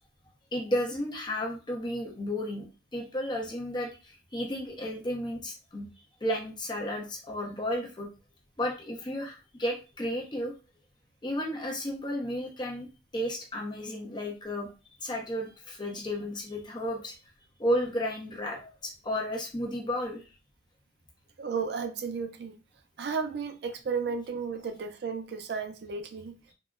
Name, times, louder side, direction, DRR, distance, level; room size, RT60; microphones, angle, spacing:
voice 1, 0.5-2.7 2.9-5.9 6.2-8.1 8.6-10.5 11.2-12.9 13.1-14.7 15.0-17.1 17.6-20.2, equal, 25° left, 0.7 m, -33 dB
voice 2, 21.4-22.5 23.0-26.3, right 5 dB, 60° right, 0.4 m, -33 dB
3.6 x 2.0 x 2.3 m
head